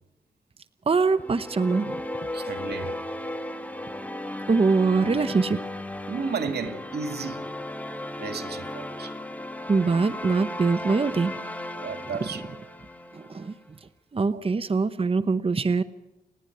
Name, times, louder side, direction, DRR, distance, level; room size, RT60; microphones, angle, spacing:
voice 1, 0.9-1.9 4.5-5.6 9.7-11.3 13.1-13.5 14.1-15.8, right 4 dB, 35° right, 0.9 m, -23 dB
sound 1, 1.1-13.5, left 1 dB, 10° left, 1.7 m, -35 dB
voice 2, 2.3-3.0 6.1-7.5 8.1-9.2 11.7-12.4 14.3-14.4, right 5 dB, 85° right, 2.1 m, -33 dB
30.0 x 10.0 x 9.2 m
wide cardioid pair, 90°, 16 cm